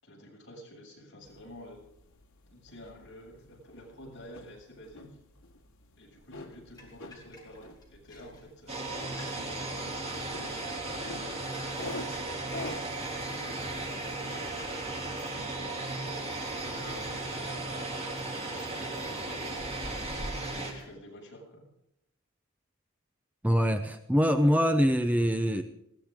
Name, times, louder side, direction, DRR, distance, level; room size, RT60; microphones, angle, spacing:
voice 1, 0.0-1.8 2.5-5.2 6.0-11.4 12.0-14.5 15.3-17.5 18.1-19.6 20.4-21.6, equal, 55° left, -2 dB, 7.3 m, -49 dB
sound 1, 1.2-17.7, left 2 dB, 70° left, 2.4 m, -48 dB
sound 2, 6.2-20.9, equal, 20° left, 5.2 m, -51 dB
sound 3, 8.7-20.7, right 2 dB, 30° right, 2.9 m, -36 dB
voice 2, 23.4-25.6, equal, 5° right, 7 dB, 0.7 m, -24 dB
20.5 x 16.5 x 3.7 m, 0.81 s
head